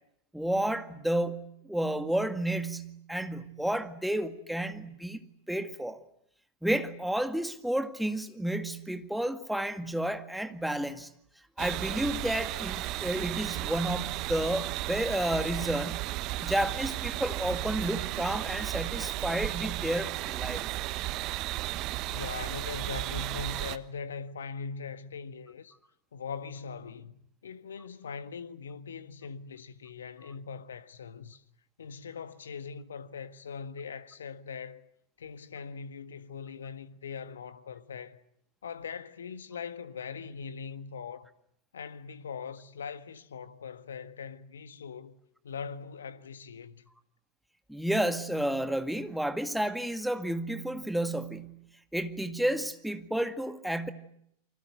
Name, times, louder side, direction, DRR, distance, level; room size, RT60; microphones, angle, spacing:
voice 1, 0.3-5.2 5.5-6.0 6.6-11.1 11.6-16.1 16.4-20.7 47.7-51.6 51.9-53.9, right 1 dB, ahead, 2.0 m, -31 dB
sound 1, 11.6-23.8, right 17 dB, 40° right, 1.2 m, -34 dB
voice 2, 22.1-25.7 26.1-31.4 31.8-34.8 35.2-38.2 38.6-41.3 41.7-45.2 45.4-46.8, left 6 dB, 65° left, 1.6 m, -41 dB
28.5 x 25.0 x 8.0 m
figure-of-eight pair, 90°, 0 cm